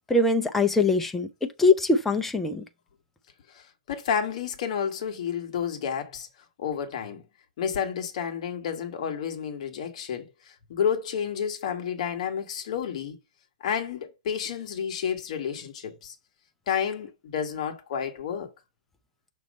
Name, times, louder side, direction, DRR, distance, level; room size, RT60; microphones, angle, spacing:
voice 1, 0.1-2.6, left 3 dB, 5° left, 0.5 m, -22 dB
voice 2, 3.5-6.3 6.6-7.2 7.6-13.2 13.6-16.2 16.7-18.5, left 7 dB, 50° left, 1.4 m, -30 dB
6.3 x 3.0 x 5.1 m
hypercardioid pair, 155°, 4 cm